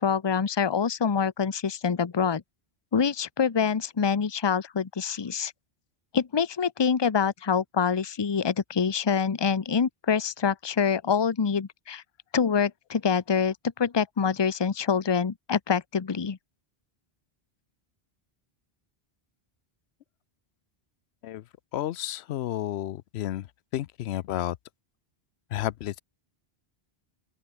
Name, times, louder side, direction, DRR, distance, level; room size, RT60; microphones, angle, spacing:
voice 1, 0.0-2.4 2.9-5.5 6.1-12.0 12.3-16.4, left 6 dB, 30° left, 0.7 m, -25 dB
voice 2, 21.7-23.5 23.7-24.6 25.5-26.0, left 13 dB, 85° left, 0.8 m, -31 dB
open air
omnidirectional pair, 1.0 m